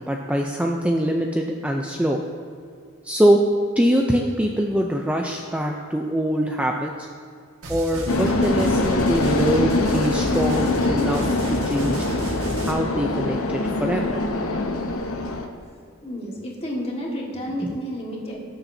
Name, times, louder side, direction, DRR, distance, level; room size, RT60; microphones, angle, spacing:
voice 1, 0.0-2.2 3.0-3.4 3.8-6.9 7.7-12.1 12.7-14.2, equal, 5° right, 1 dB, 0.4 m, -23 dB
sound 1, 7.6-12.7, right 1 dB, 85° right, 1.5 m, -33 dB
sound 2, 8.1-15.5, left 2 dB, 70° left, 0.8 m, -23 dB
voice 2, 16.0-18.4, equal, 30° left, -2 dB, 1.7 m, -31 dB
17.5 x 7.0 x 2.7 m, 2.2 s
head